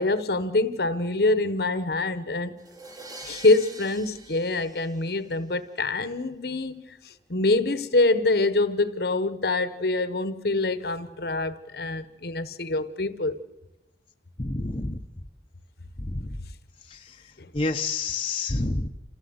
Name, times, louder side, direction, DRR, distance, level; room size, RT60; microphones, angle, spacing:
voice 1, 0.0-2.6 3.2-13.4 17.4-17.5, left 2 dB, 55° left, 1.2 m, -25 dB
sound 1, 2.6-5.5, right 2 dB, 20° right, 1.6 m, -44 dB
voice 2, 14.4-15.0 16.0-16.4 16.9-17.0 17.5-18.9, left 3 dB, 30° left, 0.9 m, -28 dB
28.0 x 16.0 x 8.0 m
head